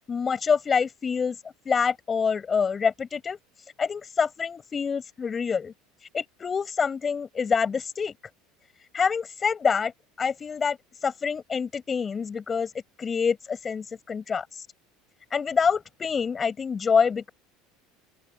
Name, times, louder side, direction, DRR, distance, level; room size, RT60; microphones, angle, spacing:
voice 1, 0.1-1.4 1.7-3.4 3.8-5.7 6.1-8.1 8.9-9.9 10.2-10.8 11.0-12.7 13.0-14.6 15.3-17.3, left 6 dB, 25° left, 7.6 m, -26 dB
open air
supercardioid pair, 100°, 0 cm